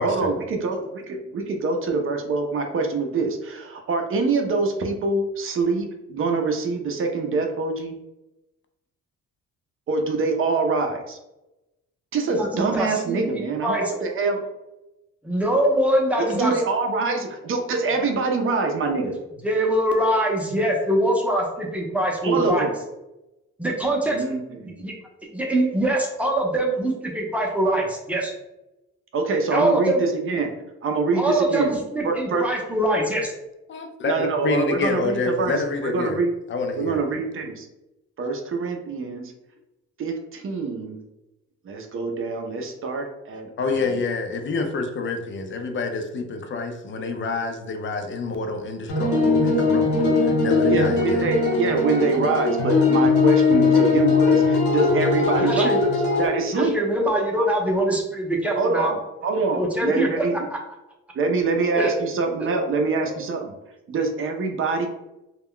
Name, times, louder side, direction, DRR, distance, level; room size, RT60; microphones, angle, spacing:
voice 1, 0.0-8.0 9.9-11.2 12.1-14.5 16.2-19.2 22.2-22.7 24.1-24.9 29.1-30.5 30.8-31.8 32.0-32.5 34.0-36.3 36.8-37.7 38.2-39.3 40.0-41.1 41.6-43.9 50.7-56.8 58.5-60.4 61.1-63.5 63.9-64.9, right 4 dB, 45° right, 3 dB, 0.6 m, -25 dB
voice 2, 12.3-13.9 15.2-16.5 19.4-22.7 23.6-24.2 24.8-24.9 25.3-28.3 29.5-30.0 31.1-33.3 53.5-53.7 55.4-55.8 56.5-58.9 59.5-60.1 61.8-61.9 63.0-63.1, right 1 dB, 5° right, -1 dB, 0.7 m, -23 dB
voice 3, 33.7-36.2 36.5-37.0 43.6-51.2 55.1-55.4 57.4-57.5, left 3 dB, 40° left, 5 dB, 0.5 m, -28 dB
sound 1, 48.9-56.3, left 4 dB, 80° left, 0.9 m, -20 dB
2.3 x 2.1 x 3.6 m, 0.96 s
cardioid pair, 90°, 30 cm